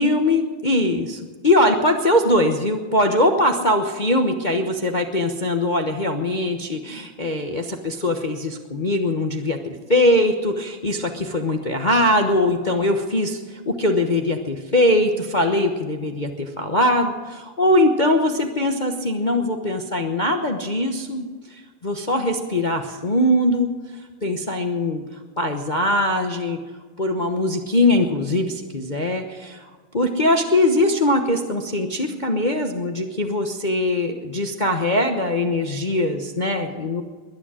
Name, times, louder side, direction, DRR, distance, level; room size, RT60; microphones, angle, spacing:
voice 1, 0.0-23.7 24.2-25.0 25.4-26.6 27.0-29.6 29.9-37.0, left 1 dB, 35° left, 4 dB, 0.8 m, -21 dB
21.5 x 10.0 x 6.2 m, 1.5 s
omnidirectional pair, 2.3 m